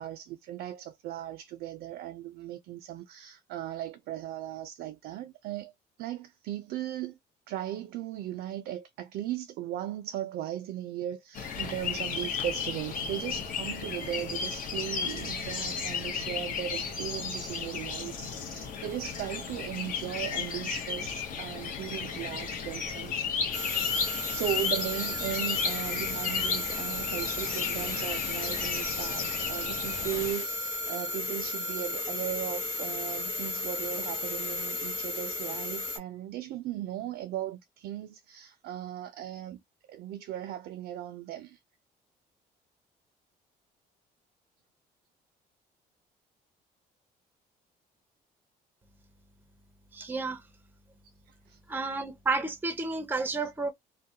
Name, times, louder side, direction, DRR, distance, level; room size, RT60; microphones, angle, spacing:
voice 1, 0.0-5.7 6.0-7.2 7.5-23.3 24.3-39.6 39.9-41.6 51.3-51.6, right 12 dB, 70° right, 0.4 m, -37 dB
sound 1, 11.3-30.3, left 6 dB, 55° left, 0.8 m, -34 dB
sound 2, 23.5-36.0, left 1 dB, 85° left, 0.9 m, -34 dB
voice 2, 49.9-50.4 51.7-53.7, right 3 dB, 10° right, 0.5 m, -31 dB
2.3 x 2.1 x 2.7 m
cardioid pair, 110°, 17 cm